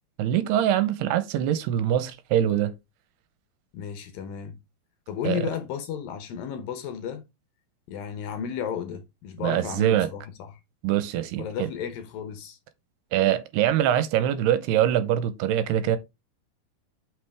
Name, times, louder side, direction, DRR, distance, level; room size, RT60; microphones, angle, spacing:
voice 1, 0.2-2.7 5.2-5.4 9.4-10.1 10.8-11.4 13.1-16.0, right 11 dB, 80° right, 2.8 m, -23 dB
voice 2, 3.7-4.6 5.1-7.3 7.9-10.6 11.4-12.6, left 8 dB, 70° left, 2.3 m, -33 dB
7.8 x 5.9 x 3.4 m
omnidirectional pair, 4.8 m